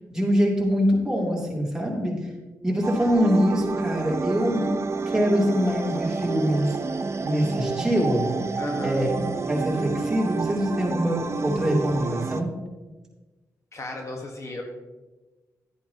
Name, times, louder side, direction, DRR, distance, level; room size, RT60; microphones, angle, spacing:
voice 1, 0.1-2.2 2.6-4.7 5.1-6.8 7.2-8.3 8.8-9.2 9.5-12.5, equal, 10° right, -3 dB, 3.1 m, -24 dB
sound 1, 2.8-12.4, right 4 dB, 45° right, 0.6 m, -30 dB
voice 2, 8.6-9.0 13.7-14.6, left 2 dB, 50° left, 1 dB, 1.5 m, -35 dB
11.5 x 10.0 x 3.0 m, 1.2 s
cardioid pair, 75°, 7 cm